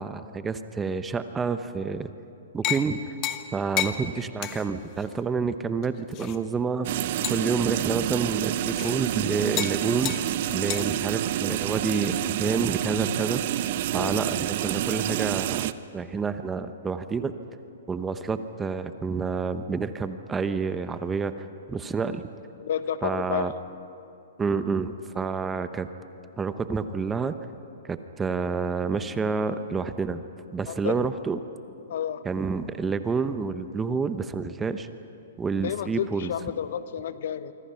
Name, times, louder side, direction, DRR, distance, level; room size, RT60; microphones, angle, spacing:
voice 1, 0.0-2.1 2.5-3.1 3.5-7.0 7.3-13.4 13.9-17.3 17.9-22.3 23.0-23.5 24.4-25.9 26.4-27.3 27.8-30.2 30.5-31.4 32.2-34.9 35.4-36.3, right 5 dB, 15° right, 10 dB, 0.9 m, -29 dB
sound 1, 2.6-2.9 3.2-3.5 3.8-4.0 4.4-4.7 5.0-5.1 5.8-6.4 7.2-7.6 8.7-9.0 9.6-9.8 10.1-10.3 10.7-10.8, left 14 dB, 35° left, 1.3 m, -30 dB
sound 2, 6.8-15.7, right 13 dB, 50° right, 0.7 m, -28 dB
voice 2, 22.6-23.5 30.7-30.9 31.9-32.2 35.6-37.5, left 9 dB, 65° left, 13 dB, 1.1 m, -31 dB
26.5 x 24.5 x 5.8 m, 2.8 s
hypercardioid pair, 135°, 0 cm